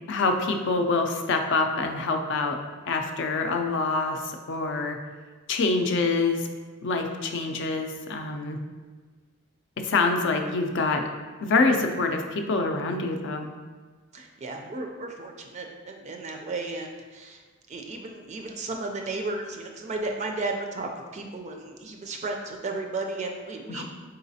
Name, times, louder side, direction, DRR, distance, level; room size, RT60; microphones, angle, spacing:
voice 1, 0.1-2.6 2.9-5.0 5.5-6.5 6.8-8.6 9.8-11.1 11.4-13.5 23.7-23.8, left 3 dB, 60° left, 5 dB, 0.5 m, -26 dB
voice 2, 14.1-17.4 17.7-23.8, right 2 dB, 35° right, 3 dB, 0.3 m, -34 dB
3.9 x 3.9 x 2.7 m, 1.4 s
head